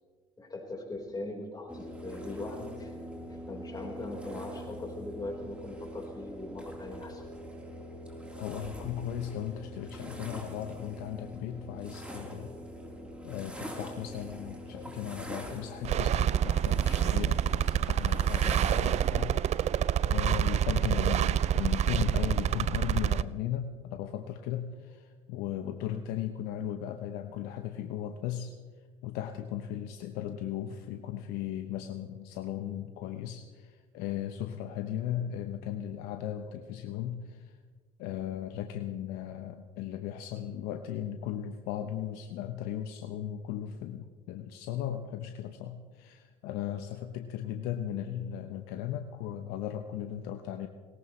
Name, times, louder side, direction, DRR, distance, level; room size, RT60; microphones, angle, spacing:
voice 1, 0.4-2.9 3.5-7.2, left 2 dB, 25° left, 1 dB, 4.3 m, -40 dB
sound 1, 1.7-19.1, equal, 5° right, 3.7 m, -43 dB
voice 2, 8.4-12.6 13.2-19.4 19.7-28.5 29.0-37.6 38.0-50.7, left 10 dB, 70° left, 7 dB, 0.9 m, -37 dB
sound 2, 15.8-23.2, right 10 dB, 40° right, 0.4 m, -27 dB
20.5 x 18.0 x 3.2 m, 1.5 s
hypercardioid pair, 65°, 17 cm